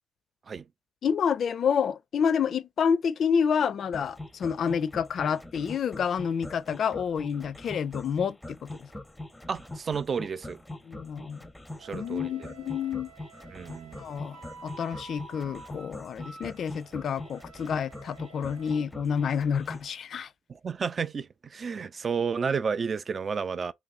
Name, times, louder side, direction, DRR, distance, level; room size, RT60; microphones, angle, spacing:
voice 1, 1.0-8.9 10.9-11.4 11.9-13.1 14.0-14.4 14.6-20.3, left 7 dB, 60° left, 0.4 m, -29 dB
sound 1, 3.9-19.9, left 1 dB, 5° left, 0.6 m, -42 dB
voice 2, 9.5-10.6 11.8-12.5 13.5-14.0 20.5-23.7, right 6 dB, 40° right, 0.3 m, -31 dB
Wind instrument woodwind instrument, 11.8-18.9, right 4 dB, 85° right, 0.7 m, -50 dB
2.9 x 2.6 x 4.1 m
cardioid pair, 90°, 0 cm